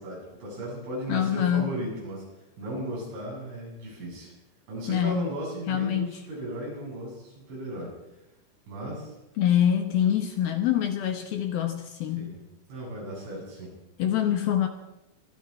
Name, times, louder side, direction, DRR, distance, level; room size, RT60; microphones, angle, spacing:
voice 1, 0.0-2.2 2.6-4.3 4.7-8.0 8.7-9.1 12.2-12.4 12.7-13.7, right 1 dB, 90° right, -4 dB, 10.0 m, -36 dB
voice 2, 1.1-1.7 4.9-5.4 5.7-6.2 9.4-12.3 14.0-14.7, left 10 dB, 70° left, 6 dB, 2.4 m, -25 dB
24.5 x 13.5 x 4.3 m, 0.97 s
omnidirectional pair, 5.4 m